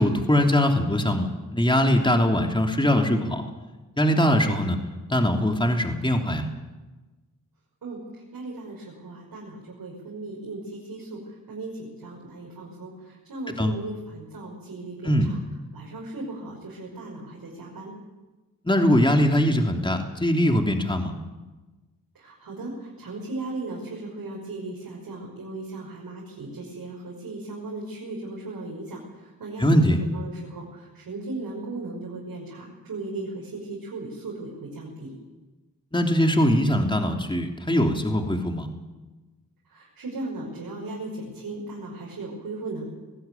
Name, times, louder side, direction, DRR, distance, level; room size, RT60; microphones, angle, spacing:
voice 1, 0.0-3.4 4.0-4.8 5.1-6.5 13.6-13.7 15.0-15.3 18.6-21.1 29.6-30.0 35.9-38.7, equal, 15° left, 3 dB, 3.2 m, -21 dB
voice 2, 7.8-15.4 15.7-17.9 22.1-35.1 39.7-42.9, right 2 dB, 80° right, -3 dB, 5.7 m, -37 dB
20.5 x 16.0 x 9.3 m, 1.2 s
cardioid pair, 45°, 34 cm